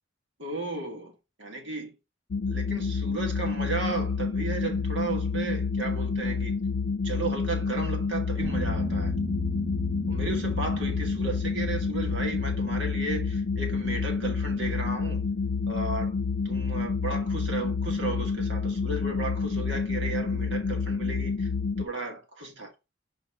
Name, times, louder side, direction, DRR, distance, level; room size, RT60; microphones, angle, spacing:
voice 1, 0.4-1.1 1.4-2.0 2.5-6.6 7.0-9.1 10.1-15.2 15.7-16.2 16.4-21.5 21.8-22.7, right 3 dB, 90° right, 2.4 m, -34 dB
sound 1, 2.3-21.9, left 5 dB, 75° left, 0.5 m, -29 dB
sound 2, 8.4-20.8, equal, 30° right, 1.2 m, -40 dB
5.0 x 4.9 x 5.6 m
head